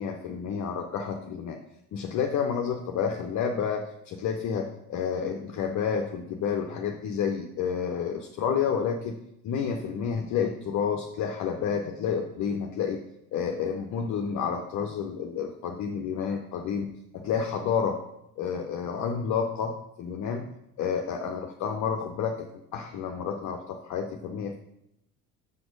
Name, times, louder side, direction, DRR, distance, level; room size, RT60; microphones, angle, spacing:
voice 1, 0.0-1.6 1.9-9.2 9.4-13.0 13.3-18.0 18.4-20.5 20.8-22.5 22.7-24.6, left 7 dB, 40° left, 4 dB, 0.7 m, -30 dB
6.1 x 5.5 x 5.1 m, 0.83 s
figure-of-eight pair, 55°, 45 cm